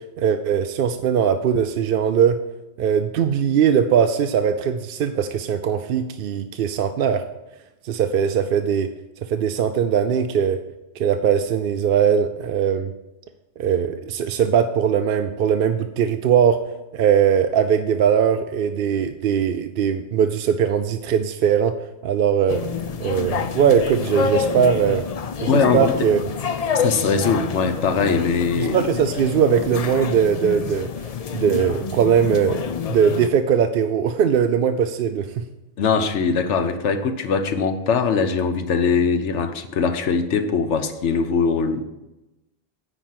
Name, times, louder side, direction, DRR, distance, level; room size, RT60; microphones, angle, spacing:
voice 1, 0.2-2.4 2.8-7.2 7.8-8.9 9.2-10.6 11.0-12.9 13.6-16.6 16.9-21.7 22.0-22.7 23.0-25.0 25.4-26.2 28.6-30.9 31.3-32.6 32.9-35.4, right 8 dB, 60° right, 8 dB, 0.6 m, -20 dB
sound 1, 22.5-33.3, left 6 dB, 50° left, 0.4 m, -27 dB
voice 2, 25.5-25.9 26.7-28.7 35.8-41.8, left 5 dB, 80° left, 9 dB, 1.1 m, -21 dB
10.0 x 4.4 x 7.5 m, 0.98 s
omnidirectional pair, 1.2 m